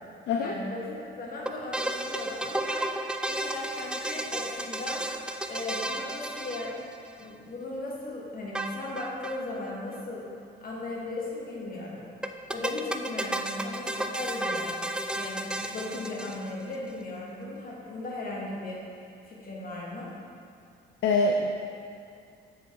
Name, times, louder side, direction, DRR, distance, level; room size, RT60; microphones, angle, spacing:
voice 1, 0.4-2.9 3.3-5.0 5.5-6.7 7.2-10.3 10.6-12.1 12.5-14.8 15.1-18.8 19.2-20.1, left 2 dB, 45° left, -4 dB, 1.6 m, -37 dB
sound 1, 1.5-7.2 8.6-9.4 9.7-9.8 9.9-10.0 12.2-16.7, right 1 dB, 5° right, 0.3 m, -33 dB
voice 2, 21.0-21.5, left 3 dB, 65° left, 3 dB, 0.5 m, -24 dB
7.9 x 4.8 x 3.7 m, 2.4 s
cardioid pair, 90°, 20 cm